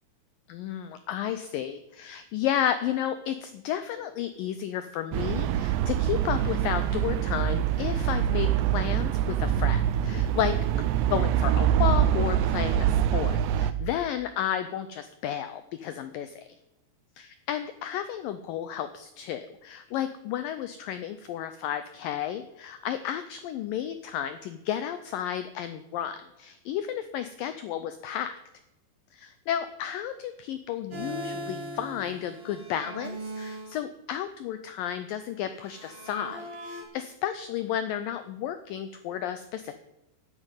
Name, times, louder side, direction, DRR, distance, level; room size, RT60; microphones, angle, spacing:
voice 1, 0.5-10.6 11.1-16.5 17.2-28.4 29.1-39.7, left 10 dB, 90° left, 11 dB, 2.0 m, -32 dB
sound 1, 5.1-13.7, right 10 dB, 85° right, 2.8 m, -25 dB
sound 2, 30.9-33.8 35.5-36.8, right 1 dB, 35° right, 3.9 m, -39 dB
10.0 x 9.1 x 9.0 m, 0.91 s
omnidirectional pair, 4.8 m